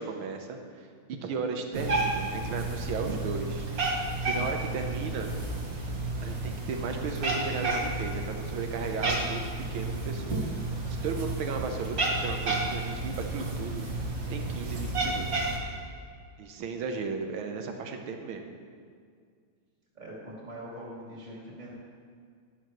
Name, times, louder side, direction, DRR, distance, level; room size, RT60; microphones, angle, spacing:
voice 1, 0.0-3.6 4.2-5.3 6.2-9.4 9.7-10.5 11.0-13.9 14.3-15.5 16.4-18.5, right 5 dB, 85° right, 5 dB, 1.7 m, -35 dB
Cat, 1.7-15.6, right 2 dB, 45° right, 1.7 m, -31 dB
voice 2, 19.9-21.7, equal, 20° right, -5 dB, 2.5 m, -42 dB
11.5 x 11.5 x 3.1 m, 2.1 s
omnidirectional pair, 2.2 m